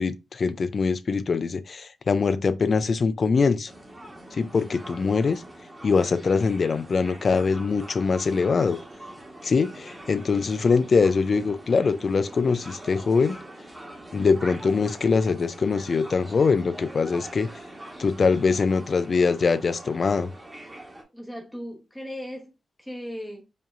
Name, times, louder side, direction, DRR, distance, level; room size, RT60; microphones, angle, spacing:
voice 1, 0.0-3.7 4.3-5.4 5.8-8.8 9.4-13.4 14.1-17.5 18.0-20.3, left 4 dB, 55° left, 0.4 m, -23 dB
sound 1, 3.7-21.0, right 1 dB, 20° right, 1.2 m, -43 dB
voice 2, 21.1-22.5 22.8-23.4, equal, 5° left, 1.0 m, -37 dB
5.0 x 2.8 x 2.5 m
cardioid pair, 75°, 0 cm